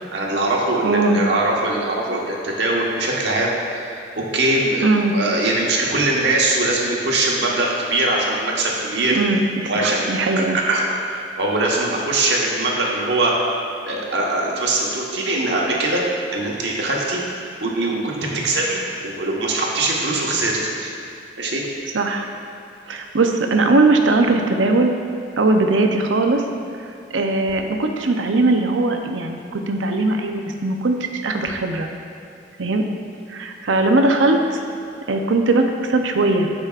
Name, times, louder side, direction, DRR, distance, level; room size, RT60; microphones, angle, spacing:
voice 1, 0.1-9.2 9.7-10.2 10.5-13.3 13.9-16.0 16.3-17.2 17.6-20.9 21.4-21.6, right 2 dB, 70° right, -3 dB, 1.2 m, -22 dB
voice 2, 0.8-1.2 4.8-5.1 9.1-10.6 21.9-22.3 22.9-24.9 25.4-26.4 27.1-31.9 32.6-32.8 33.3-34.6 35.1-36.5, right 2 dB, 90° right, 4 dB, 0.7 m, -19 dB
14.0 x 5.1 x 2.4 m, 2.5 s
head